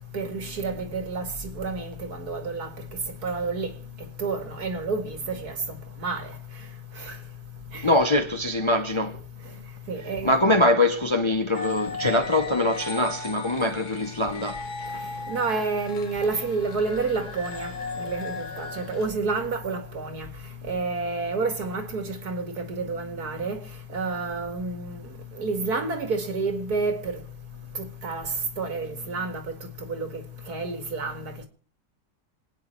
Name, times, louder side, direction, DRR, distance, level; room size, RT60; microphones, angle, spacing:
voice 1, 0.1-1.3 1.5-2.7 3.2-3.7 4.2-5.5 6.0-6.3 7.0-7.1 7.7-7.8 9.9-10.3 15.3-17.7 18.0-20.3 20.6-23.6 23.9-25.0 25.4-27.2 28.0-28.3 28.6-29.4 29.9-30.1 30.5-31.3, right 3 dB, 70° right, 2.5 m, -29 dB
voice 2, 7.8-9.2 10.2-15.1, left 1 dB, 25° left, 0.7 m, -23 dB
sound 1, 11.5-19.1, left 4 dB, 75° left, 2.2 m, -36 dB
26.5 x 9.5 x 4.5 m
omnidirectional pair, 1.7 m